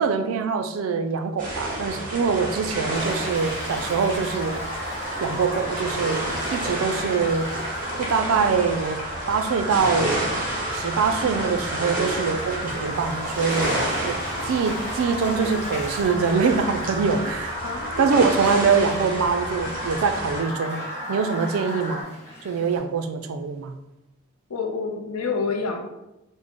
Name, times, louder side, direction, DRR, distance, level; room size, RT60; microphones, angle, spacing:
voice 1, 0.0-4.6 5.2-7.5 8.0-9.0 9.3-10.1 10.7-14.2 14.5-17.6 18.0-20.8 21.1-22.1 22.4-23.7, right 5 dB, 70° right, 8 dB, 0.3 m, -24 dB
sound 1, 1.4-20.4, right 1 dB, 40° right, 0.8 m, -31 dB
sound 2, 2.7-22.0, equal, 20° right, 1.3 m, -34 dB
Gull seagull / Waves surf, 2.9-22.8, left 1 dB, 10° left, 0.9 m, -41 dB
voice 2, 17.6-18.6 24.5-25.9, left 4 dB, 85° left, 3 dB, 0.5 m, -29 dB
3.5 x 2.1 x 3.6 m, 0.94 s
head